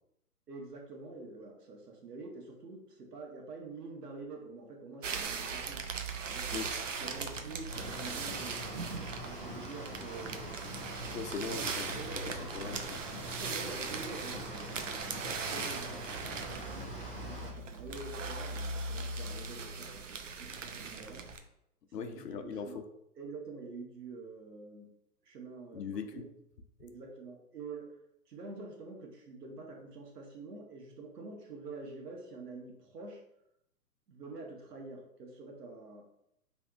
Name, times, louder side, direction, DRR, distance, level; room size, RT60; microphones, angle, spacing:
voice 1, 0.5-5.8 6.3-6.7 7.0-8.6 9.2-10.6 11.4-11.7 11.9-12.4 13.3-21.2 22.0-22.8 23.2-24.9 25.2-25.9 26.1-26.2 26.8-27.9 28.3-33.2 34.1-36.0, right 3 dB, 75° right, -1 dB, 1.3 m, -47 dB
sound 1, 5.0-21.4, right 4 dB, 55° right, 0.5 m, -39 dB
sound 2, 7.7-17.5, equal, 35° right, 1.1 m, -44 dB
voice 2, 11.0-13.0 21.9-22.9 25.7-26.3, left 5 dB, 90° left, 7 dB, 0.9 m, -40 dB
5.8 x 3.4 x 2.5 m, 0.78 s
hypercardioid pair, 180°, 47 cm